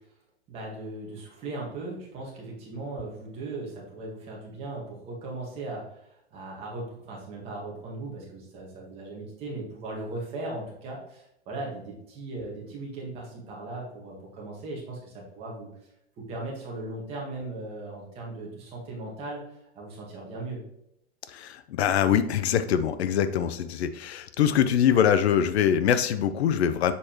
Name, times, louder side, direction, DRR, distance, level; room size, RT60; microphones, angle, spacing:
voice 1, 0.5-15.7 16.2-20.6, right 2 dB, 20° right, -3 dB, 1.5 m, -38 dB
voice 2, 21.3-26.9, left 9 dB, 75° left, 12 dB, 0.6 m, -23 dB
6.8 x 4.9 x 3.0 m, 0.80 s
supercardioid pair, 175°, 32 cm